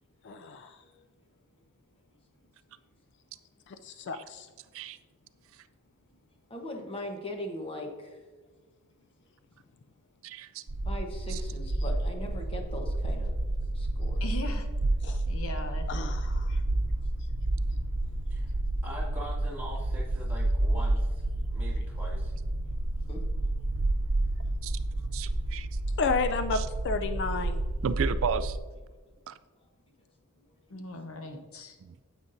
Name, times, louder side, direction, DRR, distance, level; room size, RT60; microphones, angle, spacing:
voice 1, 0.2-0.8 3.7-4.5 15.0-15.2 15.9-16.7 17.2-17.3 26.0-27.6, left 4 dB, 55° left, 0.4 m, -32 dB
voice 2, 6.5-8.2 10.8-13.3 13.7-14.3 23.0-23.2 25.0-25.1 25.5-25.6 30.4-30.5, left 1 dB, 25° left, 1.0 m, -40 dB
voice 3, 10.2-10.6 11.3-11.4 24.6-24.8 25.1-25.7 27.8-28.6 29.3-29.4 31.8-32.0, right 6 dB, 65° right, 0.3 m, -33 dB
sound 1, 10.7-28.6, right 1 dB, 85° right, 0.7 m, -30 dB
voice 4, 14.2-14.7 15.3-15.9 30.7-31.8, left 1 dB, 70° left, 0.9 m, -39 dB
voice 5, 18.8-21.3 21.5-22.3, equal, 10° right, 2.3 m, -42 dB
9.6 x 8.2 x 2.6 m
head